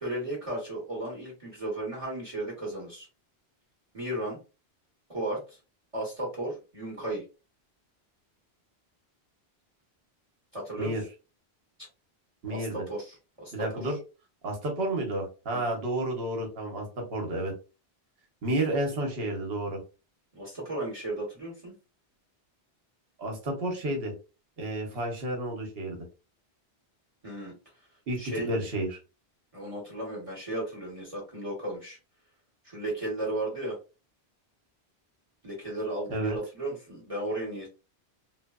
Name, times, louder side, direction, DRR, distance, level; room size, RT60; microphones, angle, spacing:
voice 1, 0.0-3.1 3.9-4.4 5.1-5.6 5.9-7.2 10.5-10.9 12.5-13.9 15.5-15.8 20.3-21.7 27.2-27.5 28.2-28.5 29.5-32.0 32.6-33.8 35.4-37.7, right 1 dB, 35° right, -4 dB, 1.0 m, -35 dB
voice 2, 12.4-12.9 13.5-14.0 14.4-17.5 18.4-19.8 23.2-24.1 24.6-26.0 28.1-29.0 36.1-36.4, right 1 dB, 70° right, 2 dB, 1.1 m, -31 dB
3.2 x 2.0 x 2.3 m, 0.32 s
omnidirectional pair, 1.1 m